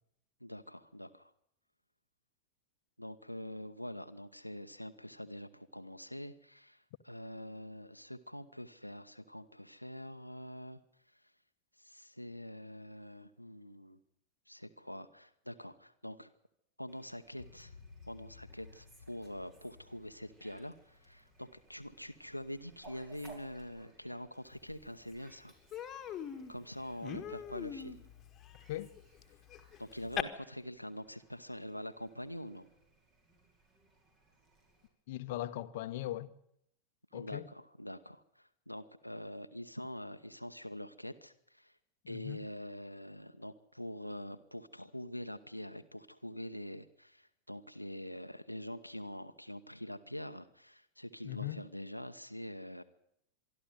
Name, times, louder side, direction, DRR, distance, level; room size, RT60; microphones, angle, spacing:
voice 1, 0.4-1.3 3.0-10.8 11.8-14.0 14.5-16.3 16.8-17.7 18.1-25.5 26.5-28.0 29.8-32.7 37.1-41.7 42.1-52.8, equal, 90° left, 0.9 m, -45 dB
Fowl, 16.9-34.9, right 3 dB, 35° right, 5.2 m, -63 dB
sound 1, 17.4-22.7, left 4 dB, 70° left, 1.3 m, -57 dB
Human voice, 24.7-24.8 25.1-25.3 25.7-30.2, left 9 dB, 25° left, 1.7 m, -42 dB
voice 2, 35.1-36.3 37.1-37.4 42.1-42.4 51.2-51.6, left 14 dB, 50° left, 1.0 m, -39 dB
24.5 x 12.5 x 9.3 m
figure-of-eight pair, 90°, 0 cm